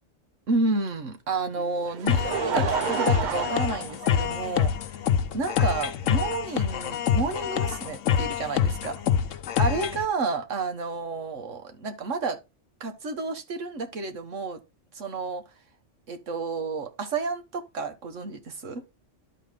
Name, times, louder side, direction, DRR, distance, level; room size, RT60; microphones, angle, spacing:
voice 1, 0.5-4.7 5.3-8.9 9.6-12.4 12.8-14.6 14.9-15.4 16.1-18.8, right 3 dB, 75° right, 1.6 m, -30 dB
Laughter, 1.6-4.8 5.6-5.7 7.2-7.3, right 7 dB, 50° right, 0.6 m, -31 dB
sound 1, 2.1-10.0, left 8 dB, 80° left, 1.0 m, -26 dB
12.5 x 4.2 x 3.6 m
omnidirectional pair, 1.3 m